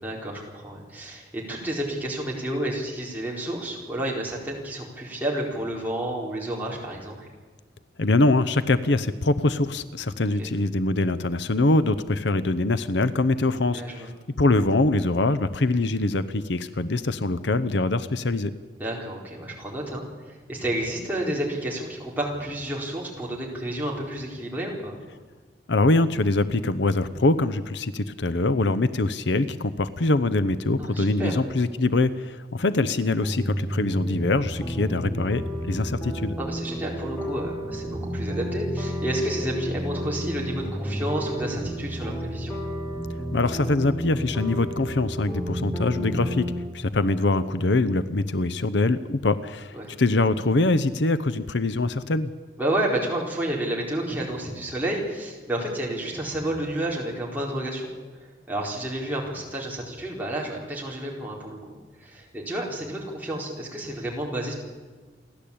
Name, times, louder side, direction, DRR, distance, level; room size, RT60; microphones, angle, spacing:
voice 1, 0.0-7.3 10.4-10.5 13.7-14.1 18.8-25.0 30.8-31.4 36.4-42.6 46.2-46.4 49.7-49.9 52.6-61.6 62.0-64.5, right 1 dB, 10° right, -3 dB, 4.3 m, -30 dB
voice 2, 8.0-14.1 14.4-18.5 25.7-36.3 43.3-46.4 46.7-52.3, left 2 dB, 75° left, 13 dB, 0.8 m, -23 dB
sound 1, 33.2-46.6, equal, 10° left, 4.0 m, -31 dB
29.0 x 12.0 x 8.6 m, 1.4 s
head